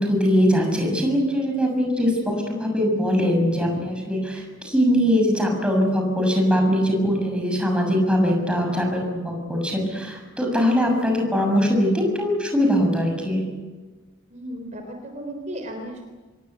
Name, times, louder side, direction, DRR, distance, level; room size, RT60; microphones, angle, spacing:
voice 1, 0.0-13.4, equal, 5° right, 2 dB, 6.8 m, -21 dB
voice 2, 14.3-16.0, right 1 dB, 35° right, 4 dB, 3.6 m, -35 dB
26.5 x 22.0 x 8.2 m, 1.3 s
head